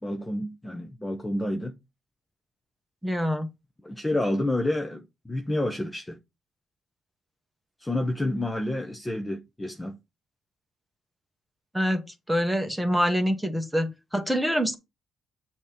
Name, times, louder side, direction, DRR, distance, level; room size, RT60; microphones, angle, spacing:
voice 1, 0.0-1.8 3.8-6.2 7.8-10.0, left 1 dB, 15° left, 0.7 m, -29 dB
voice 2, 3.0-3.5 11.7-14.8, equal, 5° right, 1.2 m, -26 dB
7.0 x 2.9 x 5.0 m
cardioid pair, 90°, 0 cm